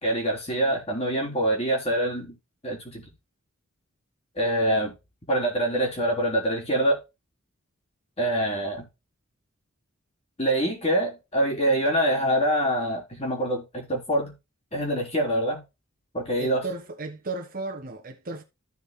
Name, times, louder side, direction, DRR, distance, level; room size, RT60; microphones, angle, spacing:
voice 1, 0.0-2.3 2.6-3.0 4.4-4.9 5.3-7.0 8.2-8.8 10.4-14.3 14.7-15.6 16.1-16.6, right 1 dB, 30° left, 3.6 m, -25 dB
voice 2, 16.4-18.4, right 3 dB, 40° right, 1.3 m, -35 dB
14.5 x 6.5 x 2.2 m
head